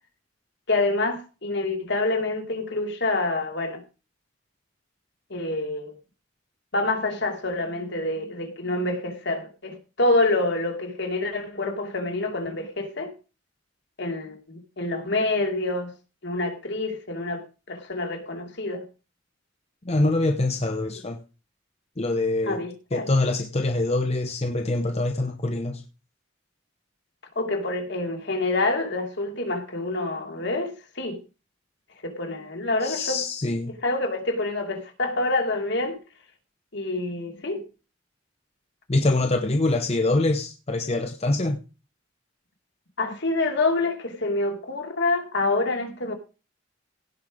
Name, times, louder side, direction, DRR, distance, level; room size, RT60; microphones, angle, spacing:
voice 1, 0.7-3.8 5.3-5.9 6.7-13.1 14.0-15.9 16.2-18.8 22.4-23.1 27.4-31.2 32.0-33.2 33.7-36.0 36.7-37.6 43.0-46.1, left 2 dB, 65° left, 2.7 m, -27 dB
voice 2, 19.8-21.2 22.0-22.6 22.9-25.8 32.8-33.7 38.9-41.6, left 2 dB, 35° left, 0.9 m, -24 dB
17.0 x 5.7 x 5.0 m
head